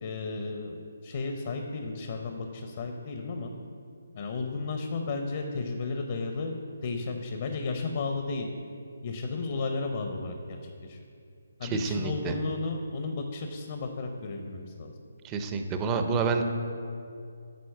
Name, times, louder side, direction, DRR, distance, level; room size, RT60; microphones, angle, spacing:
voice 1, 0.0-3.5 4.2-6.6 6.8-8.5 9.0-10.6 10.9-11.0 11.6-14.9, left 3 dB, 45° left, 5 dB, 0.7 m, -33 dB
voice 2, 11.6-12.3 15.2-16.4, right 4 dB, 15° right, 6 dB, 0.5 m, -28 dB
9.3 x 4.2 x 5.5 m, 2.4 s
hypercardioid pair, 160°, 0 cm